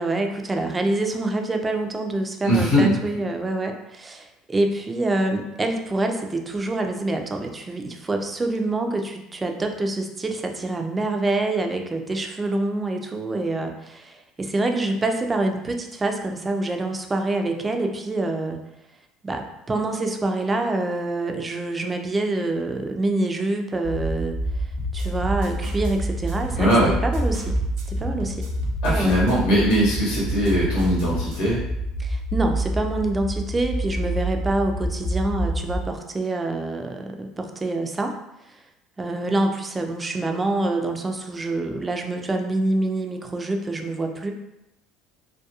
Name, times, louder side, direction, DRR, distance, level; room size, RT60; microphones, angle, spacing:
voice 1, 0.0-18.6 19.2-24.4 24.9-26.7 27.0-27.6 27.9-28.5 28.9-29.1 32.0-38.2 38.5-38.6 39.0-44.3, right 2 dB, 20° right, 4 dB, 0.4 m, -26 dB
voice 2, 2.4-2.9 26.6-26.9 28.8-31.6, equal, 70° left, -6 dB, 0.9 m, -20 dB
sound 1, 23.8-35.8, right 1 dB, 40° left, 0.4 m, -27 dB
sound 2, 24.8-26.0 26.3-29.4 29.7-31.6, right 1 dB, 75° right, 0.5 m, -37 dB
2.3 x 2.2 x 2.8 m, 0.88 s
hypercardioid pair, 80°, 0 cm